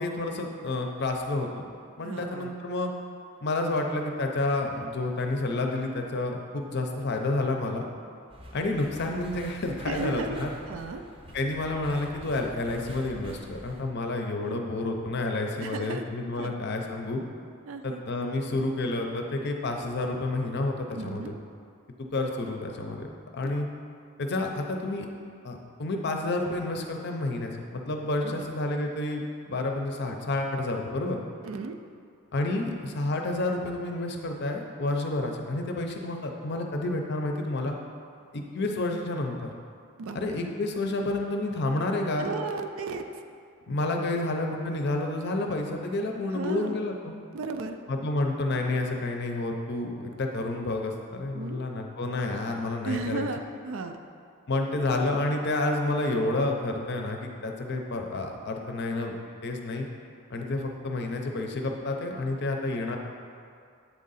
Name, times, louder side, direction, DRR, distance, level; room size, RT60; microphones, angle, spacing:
voice 1, 0.0-1.6 2.0-2.9 3.4-7.9 8.5-10.5 11.3-17.2 17.8-21.3 22.0-23.1 23.3-23.7 24.2-25.1 25.4-31.2 32.3-37.7 38.3-39.5 40.1-42.3 43.7-47.1 47.9-53.3 54.5-59.1 59.4-59.9 60.3-63.0, left 2 dB, 50° left, 3 dB, 0.6 m, -29 dB
voice 2, 2.0-2.5 9.8-10.4 10.7-11.0 14.4-14.6 15.6-16.1 16.4-16.5 17.7-18.0 20.9-21.3 23.4-23.5 28.2-28.5 31.4-31.8 40.0-40.4 42.2-43.1 44.1-44.2 46.3-46.7 47.3-47.8 51.3-51.6 52.8-54.0, right 3 dB, 65° right, 6 dB, 0.4 m, -35 dB
sound 1, 8.3-13.8, equal, 25° right, 0.6 m, -46 dB
8.2 x 3.7 x 4.0 m, 2.3 s
head